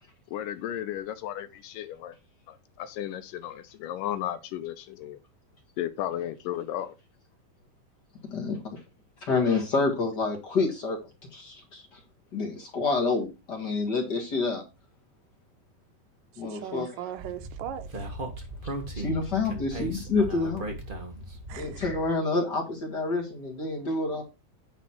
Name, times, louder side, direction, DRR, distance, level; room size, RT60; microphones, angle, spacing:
voice 1, 0.3-2.2 2.5-5.2 5.8-7.0, left 11 dB, 80° left, 2.2 m, -34 dB
voice 2, 8.3-8.8 9.2-11.0 11.3-12.0 12.3-14.6 16.4-16.9 18.9-20.6 21.5-24.2, left 3 dB, 40° left, 1.8 m, -28 dB
voice 3, 16.3-18.1 21.5-21.8, right 10 dB, 80° right, 2.4 m, -39 dB
Speech, 17.2-22.1, right 1 dB, 50° right, 0.6 m, -37 dB
9.6 x 4.1 x 5.8 m
omnidirectional pair, 4.0 m